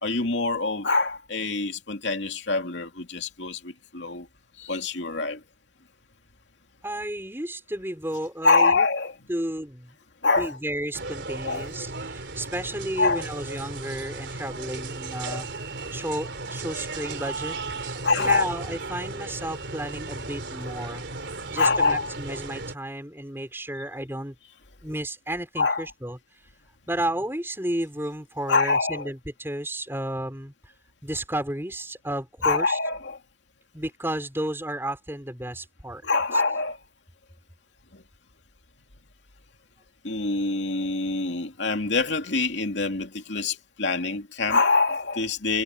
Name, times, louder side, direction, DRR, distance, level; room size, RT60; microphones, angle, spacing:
voice 1, 0.0-4.3 4.6-5.4 8.4-9.1 10.2-10.6 11.4-11.7 13.0-13.2 15.2-15.4 18.0-18.5 21.4-22.1 25.6-25.8 28.5-29.1 32.4-33.2 36.0-36.8 37.9-38.0 40.0-45.6, left 3 dB, 75° left, 2.6 m, -25 dB
voice 2, 6.8-8.9 9.3-10.0 10.4-15.5 15.9-17.6 17.8-21.1 21.5-24.4 24.8-26.2 26.9-30.7 31.0-32.8 33.7-36.0, right 1 dB, 10° right, 5.2 m, -32 dB
sound 1, 10.9-22.8, right 3 dB, 70° right, 3.4 m, -35 dB
head